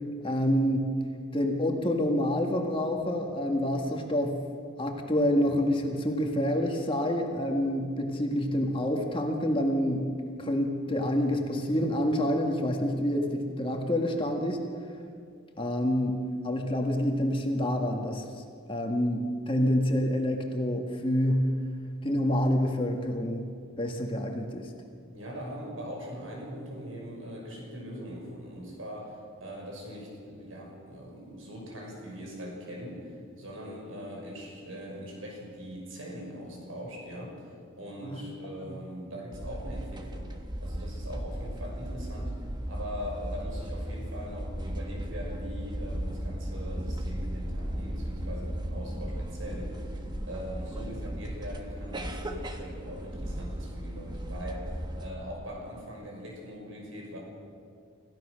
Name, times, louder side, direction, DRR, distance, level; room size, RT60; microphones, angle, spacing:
voice 1, 0.2-1.0 1.3-4.4 4.8-10.1 10.4-14.6 15.6-16.2 16.4-18.2 18.7-21.5 22.0-23.5 23.8-24.7 38.0-38.2 38.6-38.8, equal, 25° left, 2 dB, 1.9 m, -27 dB
voice 2, 25.1-37.4 37.8-40.3 40.6-42.4 42.7-50.0 50.3-57.2, equal, 75° right, 0 dB, 6.1 m, -41 dB
sound 1, 39.3-55.1, equal, 20° right, 1.3 m, -36 dB
27.0 x 16.0 x 6.5 m, 2.2 s
head